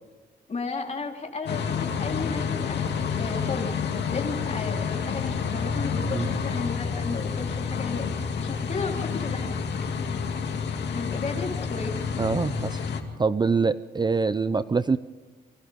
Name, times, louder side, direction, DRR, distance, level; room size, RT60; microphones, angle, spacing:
voice 1, 0.5-2.9 3.2-3.7 4.1-9.6 10.9-12.0, left 4 dB, 40° left, 1 dB, 4.0 m, -34 dB
sound 1, 1.5-13.0, left 6 dB, 80° left, 2.4 m, -29 dB
voice 2, 12.2-12.8 13.2-15.0, right 4 dB, 25° right, 13 dB, 0.6 m, -24 dB
29.0 x 25.0 x 3.7 m, 1.3 s
cardioid pair, 105°, 17 cm